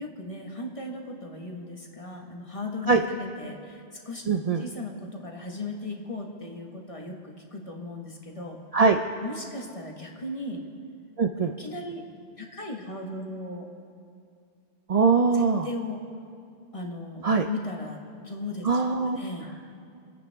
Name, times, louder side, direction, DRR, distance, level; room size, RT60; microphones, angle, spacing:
voice 1, 0.0-4.2 4.6-8.6 9.2-10.6 11.6-12.0 12.4-13.7 15.3-16.0 16.7-18.0 18.2-19.5, left 2 dB, 30° left, 1 dB, 1.5 m, -37 dB
voice 2, 4.3-4.6 8.7-9.0 11.2-11.5 14.9-15.7 17.2-17.5 18.6-19.2, right 4 dB, 45° right, 4 dB, 0.5 m, -22 dB
27.0 x 9.3 x 3.5 m, 2.4 s
omnidirectional pair, 1.1 m